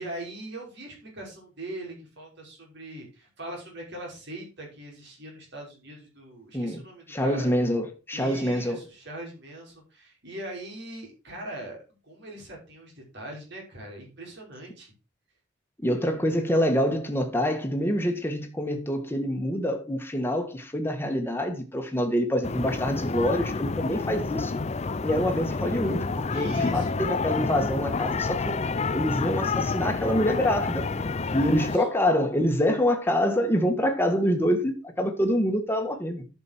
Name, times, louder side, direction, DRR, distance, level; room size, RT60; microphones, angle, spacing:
voice 1, 0.0-7.5 8.1-11.8 12.0-14.9 26.3-27.0 31.3-31.7, right 1 dB, 60° right, 5.3 m, -41 dB
voice 2, 7.1-8.8 15.8-24.6 25.0-28.6 28.9-30.9 31.3-36.3, equal, 10° left, 1.7 m, -26 dB
sound 1, 22.4-31.8, left 4 dB, 35° left, 0.5 m, -29 dB
11.0 x 6.3 x 4.5 m
head